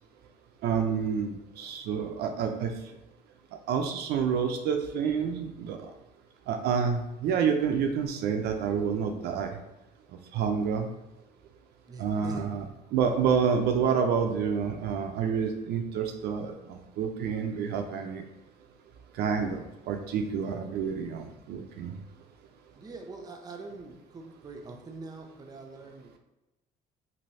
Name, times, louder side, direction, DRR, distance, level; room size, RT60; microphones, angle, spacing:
voice 1, 0.6-2.7 3.7-5.8 6.5-9.5 10.3-10.9 12.0-12.7 12.9-18.2 19.2-21.9, right 6 dB, 75° right, 5 dB, 0.4 m, -28 dB
voice 2, 11.9-12.4 22.8-26.1, right 3 dB, 20° right, 2 dB, 0.5 m, -43 dB
3.2 x 2.6 x 2.6 m, 0.96 s
cardioid pair, 110°, 17 cm